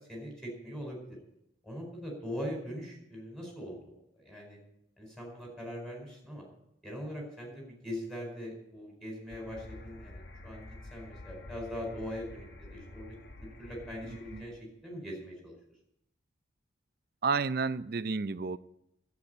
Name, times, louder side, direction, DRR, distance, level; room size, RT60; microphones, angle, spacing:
voice 1, 0.1-1.2 1.6-4.6 5.0-6.4 6.8-15.6, equal, 5° left, -2 dB, 4.7 m, -41 dB
sound 1, 9.3-14.4, left 2 dB, 55° left, 1.4 m, -49 dB
voice 2, 14.0-14.4 17.2-18.6, right 4 dB, 50° right, 13 dB, 0.5 m, -31 dB
12.0 x 8.4 x 9.6 m, 0.79 s
head